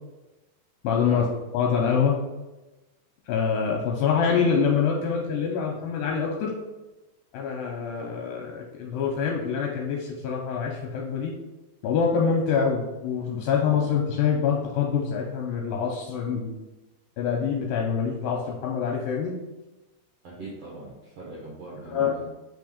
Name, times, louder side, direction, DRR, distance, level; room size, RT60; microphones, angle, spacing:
voice 1, 0.8-1.3 1.5-2.1 3.3-6.5 7.3-11.3 11.8-16.5 17.2-19.4 21.9-22.2, left 6 dB, 80° left, -1 dB, 2.3 m, -25 dB
voice 2, 20.2-22.2, right 2 dB, 75° right, -4 dB, 1.4 m, -41 dB
5.4 x 3.5 x 5.0 m, 1.1 s
omnidirectional pair, 4.5 m